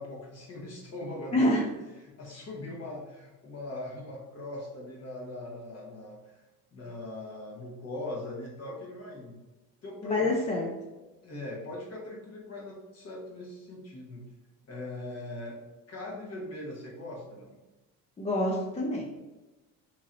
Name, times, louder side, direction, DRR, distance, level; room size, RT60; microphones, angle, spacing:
voice 1, 0.0-1.7 1.9-6.4 6.7-9.4 9.8-10.3 11.2-14.3 14.7-15.6 15.9-17.6, left 1 dB, 40° left, -2 dB, 1.1 m, -40 dB
voice 2, 10.0-10.7 18.2-19.1, left 1 dB, 20° left, -1 dB, 0.4 m, -26 dB
3.0 x 2.8 x 2.5 m, 1.1 s
supercardioid pair, 95°, 38 cm